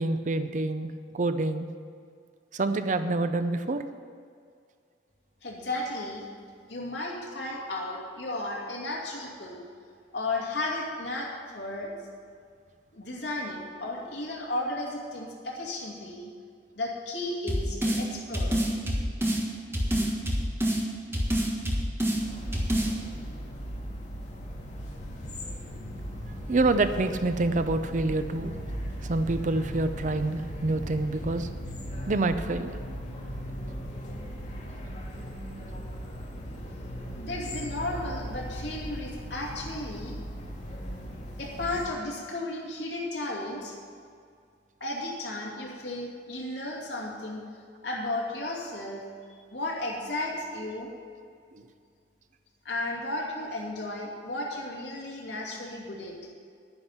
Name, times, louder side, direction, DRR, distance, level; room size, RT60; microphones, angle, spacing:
voice 1, 0.0-1.7 2.5-3.8 20.0-20.1 26.5-28.5 29.0-31.5 32.1-32.7 51.5-51.6, right 2 dB, 45° right, 10 dB, 0.6 m, -27 dB
voice 2, 5.4-6.3 6.7-9.6 10.1-11.9 12.9-16.3 16.7-18.5 37.1-40.2 41.4-43.7 44.8-47.4 47.8-49.0 49.5-50.9 52.6-56.1, left 2 dB, 70° left, -3 dB, 2.5 m, -34 dB
sound 1, 17.5-18.0 18.3-19.4 19.7-20.8 21.1-22.2 22.5-22.9, equal, 15° right, 1.6 m, -26 dB
sound 2, 22.2-41.9, equal, 40° left, 1.9 m, -38 dB
10.5 x 9.8 x 5.8 m, 2.2 s
head